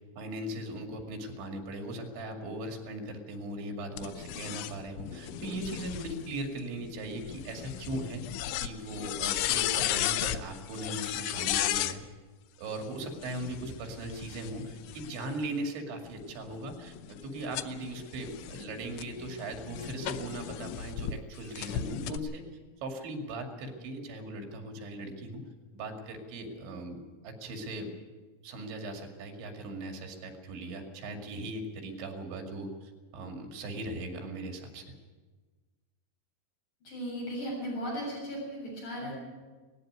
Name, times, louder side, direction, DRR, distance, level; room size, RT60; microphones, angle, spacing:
voice 1, 0.2-8.2 8.6-12.0 12.6-17.0 17.2-22.4 22.8-25.4 25.7-27.9 28.4-34.8, right 1 dB, 80° right, 3 dB, 4.7 m, -39 dB
sound 1, 4.0-12.0 13.1-15.5 16.1-21.1 21.6-22.2, left 12 dB, 90° left, 3.2 m, -35 dB
voice 2, 36.9-39.2, equal, 45° left, -4 dB, 8.9 m, -36 dB
19.0 x 15.0 x 9.6 m, 1.4 s
omnidirectional pair, 5.2 m